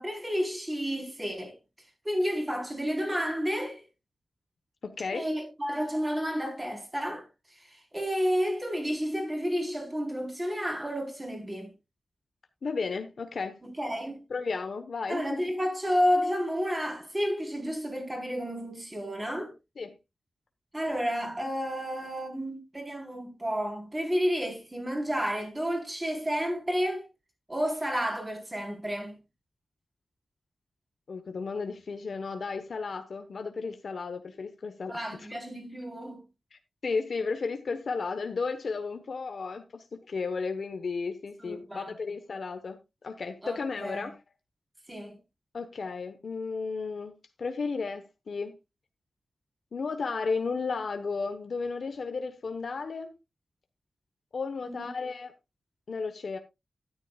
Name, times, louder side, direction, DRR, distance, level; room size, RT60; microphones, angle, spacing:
voice 1, 0.0-1.6 2.0-3.8 5.1-7.3 7.5-11.7 13.6-14.2 15.1-19.5 20.7-27.1 27.5-29.2 34.9-36.2 41.4-41.9 43.4-44.1 44.9-45.2 54.6-54.9, equal, 15° right, 4.0 m, -31 dB
voice 2, 4.8-5.3 12.6-13.6 14.3-15.4 19.8-20.0 31.1-35.3 36.5-42.8 43.0-44.1 45.5-48.6 49.7-53.2 54.3-55.3 55.9-56.4, left 4 dB, 60° left, 1.1 m, -34 dB
13.0 x 11.0 x 2.4 m
wide cardioid pair, 130°, 0 cm